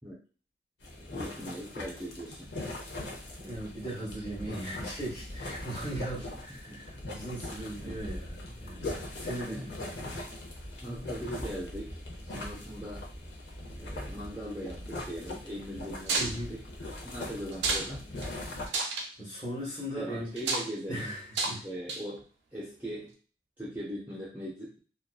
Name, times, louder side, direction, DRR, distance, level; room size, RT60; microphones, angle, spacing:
sound 1, 0.8-18.7, left 1 dB, 85° left, 0.7 m, -41 dB
voice 1, 1.1-2.5 6.0-6.8 7.8-8.0 9.4-9.7 10.8-13.1 13.8-16.6 17.0-18.0 20.0-21.1 21.6-23.2 23.6-24.8, equal, 10° right, -6 dB, 0.4 m, -40 dB
voice 2, 3.4-10.2 16.2-16.6 18.5-20.3 20.9-21.7, right 1 dB, 20° left, -9 dB, 0.8 m, -39 dB
sound 2, 16.1-16.3 17.5-17.9 18.2-18.3 18.7-19.1 20.4-20.7 21.3-21.6 21.9-22.2, right 3 dB, 85° right, 0.5 m, -30 dB
2.5 x 2.2 x 2.3 m, 0.39 s
head